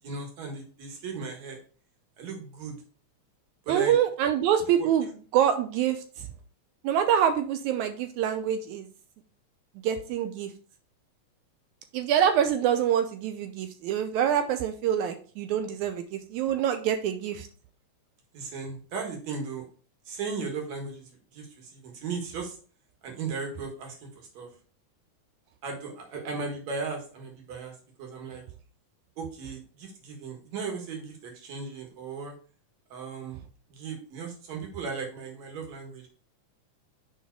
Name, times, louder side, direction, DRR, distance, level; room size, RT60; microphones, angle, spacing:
voice 1, 0.0-1.6 2.2-2.8 3.7-4.0 4.6-4.9 18.3-19.7 20.1-21.0 21.3-22.6 23.0-24.5 25.6-28.4 29.2-32.3 32.9-33.4 33.7-36.1, right 4 dB, 65° right, 1 dB, 2.8 m, -36 dB
voice 2, 3.7-6.3 6.8-8.9 9.8-10.5 11.9-17.5, right 9 dB, 80° right, 7 dB, 2.0 m, -26 dB
5.6 x 4.8 x 4.5 m, 0.40 s
omnidirectional pair, 3.4 m